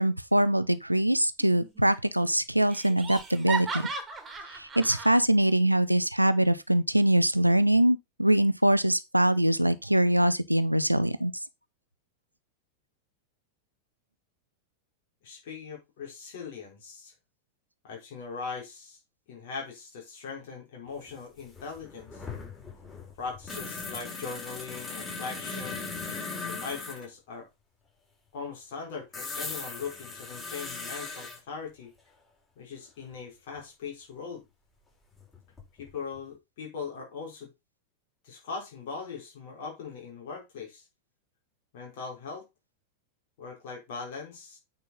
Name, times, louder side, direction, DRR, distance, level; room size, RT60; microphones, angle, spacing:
voice 1, 0.0-3.9 4.5-11.3, right 1 dB, 85° right, 0.7 m, -23 dB
Laughter, 1.4-1.9 2.2-2.3 2.7-5.2, right 4 dB, 20° right, 2.3 m, -36 dB
voice 2, 15.2-17.1 17.8-19.0 19.3-22.2 23.2-25.8 26.4-27.5 28.3-31.9 32.6-34.5 35.8-37.5 38.2-40.8 41.7-42.5 43.4-44.6, left 5 dB, 50° left, 4.3 m, -40 dB
sound 1, 21.1-21.2 21.4-27.1 29.1-31.4 33.6-33.7 35.2-35.9 36.2-36.3, left 4 dB, 15° left, 4.6 m, -38 dB
8.9 x 5.6 x 4.0 m
figure-of-eight pair, 90°, 0 cm